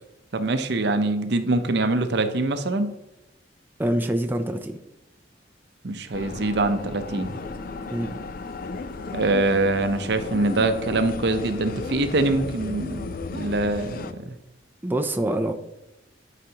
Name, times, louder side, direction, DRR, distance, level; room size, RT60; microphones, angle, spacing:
voice 1, 0.3-2.9 5.8-7.4 9.1-14.3, right 2 dB, 65° right, 8 dB, 0.7 m, -24 dB
voice 2, 3.8-4.8 7.9-8.1 14.8-15.5, right 1 dB, 10° right, 6 dB, 0.4 m, -25 dB
sound 1, 6.1-14.1, left 3 dB, 50° left, 0.5 m, -35 dB
11.0 x 5.0 x 2.9 m, 0.93 s
head